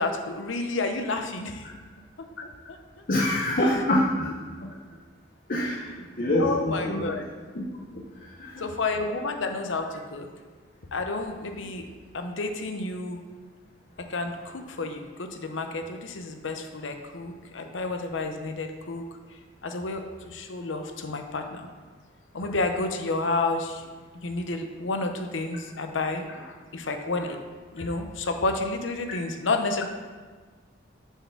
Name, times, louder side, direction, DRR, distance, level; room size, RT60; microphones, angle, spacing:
voice 1, 0.0-1.7 2.2-2.8 5.6-5.8 6.4-7.3 8.6-10.3 10.9-11.9 12.1-13.2 14.0-19.0 19.6-21.7 22.3-23.8 24.1-27.4 27.7-29.8, left 3 dB, 85° left, 5 dB, 0.8 m, -30 dB
voice 2, 3.1-4.3 4.6-4.7 5.5-5.8 6.2-7.1 7.5-7.7 8.2-8.6, left 1 dB, 45° left, -3 dB, 0.8 m, -25 dB
6.7 x 4.6 x 5.9 m, 1.5 s
head